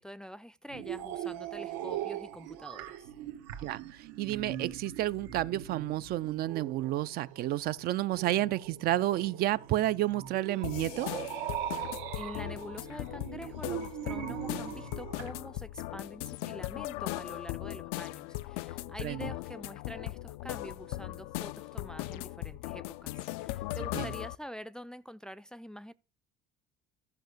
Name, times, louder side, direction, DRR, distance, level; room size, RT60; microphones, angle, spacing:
voice 1, 0.0-3.1 12.2-25.9, equal, 5° left, 0.4 m, -46 dB
sound 1, 0.7-15.3, right 11 dB, 85° right, 1.4 m, -41 dB
voice 2, 3.6-11.1 19.0-19.3 23.9-24.1, right 14 dB, 60° right, 0.6 m, -31 dB
sound 2, 10.6-24.4, left 17 dB, 85° left, 0.4 m, -38 dB
13.0 x 5.6 x 6.6 m
supercardioid pair, 100°, 18 cm